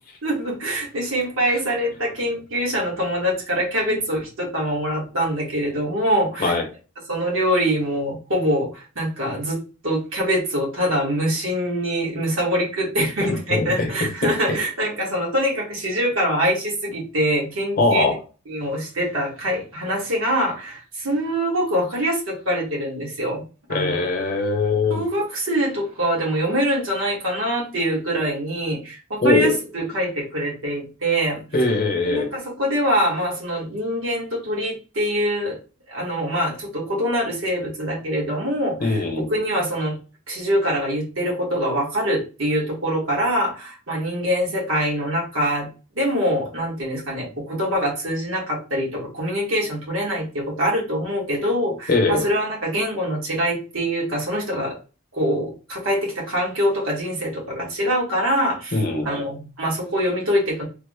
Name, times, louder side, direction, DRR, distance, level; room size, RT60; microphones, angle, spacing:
voice 1, 0.2-6.6 7.1-9.6 9.8-18.1 18.5-23.4 23.7-24.0 24.9-31.4 32.0-35.6 35.9-40.0 40.3-45.7 45.9-54.8 55.1-60.6, equal, 65° right, -2 dB, 1.3 m, -24 dB
voice 2, 13.2-13.9 14.2-14.3 17.8-18.2 23.7-25.0 29.2-29.5 31.5-32.3 38.8-39.3 51.9-52.2 58.7-59.1, left 3 dB, 40° left, 4 dB, 0.8 m, -21 dB
3.4 x 2.0 x 3.5 m, 0.34 s
head